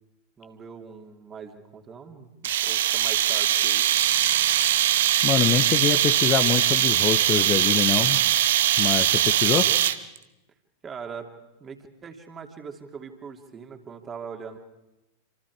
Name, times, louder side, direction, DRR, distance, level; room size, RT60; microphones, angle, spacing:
voice 1, 0.4-4.0 10.8-11.3 11.6-14.6, right 6 dB, 20° right, 4 dB, 2.9 m, -41 dB
sound 1, 2.4-10.2, right 12 dB, 60° right, 1.0 m, -21 dB
voice 2, 5.2-8.2 8.8-9.7, left 9 dB, 30° left, 9 dB, 1.2 m, -25 dB
27.5 x 26.0 x 4.9 m, 0.96 s
figure-of-eight pair, 90°, 0 cm